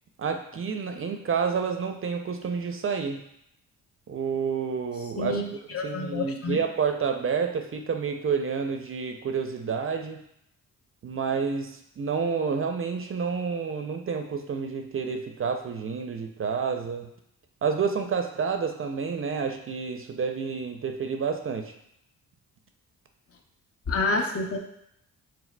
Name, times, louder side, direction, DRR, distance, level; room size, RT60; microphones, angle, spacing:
voice 1, 0.2-3.2 4.1-5.4 5.7-10.2 11.0-17.1 17.6-21.7, right 6 dB, 40° right, 5 dB, 0.4 m, -29 dB
voice 2, 5.2-5.5 5.7-6.6 23.9-24.6, left 3 dB, 40° left, 4 dB, 0.6 m, -28 dB
4.7 x 3.6 x 2.2 m, 0.76 s
cardioid pair, 70°, 35 cm